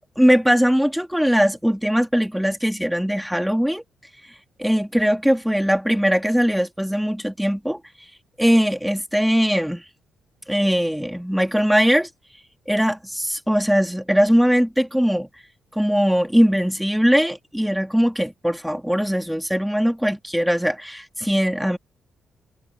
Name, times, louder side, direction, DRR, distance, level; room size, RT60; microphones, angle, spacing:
voice 1, 0.2-3.8 4.6-7.8 8.4-9.8 10.5-12.1 12.7-13.0 13.5-15.3 15.7-21.8, equal, ahead, 2.5 m, -20 dB
cardioid pair, 115°, 0 cm